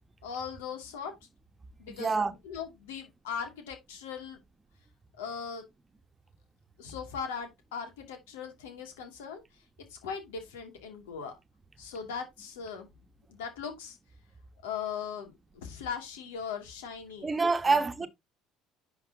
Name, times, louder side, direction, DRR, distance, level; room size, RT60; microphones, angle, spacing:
voice 1, 0.2-1.1 1.8-2.1 2.4-4.4 5.2-5.6 6.8-9.4 9.9-11.3 11.8-12.9 13.3-14.0 14.6-17.3 17.6-17.8, left 6 dB, 85° left, 2.6 m, -39 dB
voice 2, 1.9-2.3 17.2-18.1, right 4 dB, 25° right, 1.2 m, -26 dB
10.5 x 4.8 x 2.9 m
hypercardioid pair, 75°, 0 cm